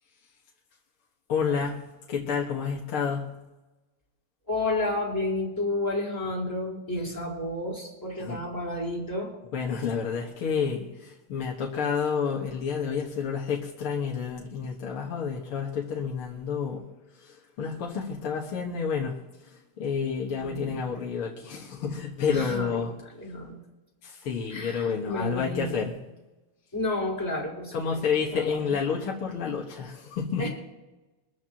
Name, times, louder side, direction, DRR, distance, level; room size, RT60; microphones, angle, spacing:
voice 1, 1.3-1.8 2.1-3.3 8.2-8.4 9.5-16.8 17.2-19.2 19.8-22.9 24.0-25.9 27.7-30.5, left 6 dB, 75° left, -2 dB, 2.4 m, -29 dB
voice 2, 4.5-9.3 20.4-20.9 22.3-22.8 23.2-23.6 24.5-25.8 26.7-28.8 30.4-30.5, left 2 dB, 10° left, -5 dB, 4.4 m, -31 dB
23.5 x 14.0 x 3.0 m, 1.1 s
omnidirectional pair, 2.4 m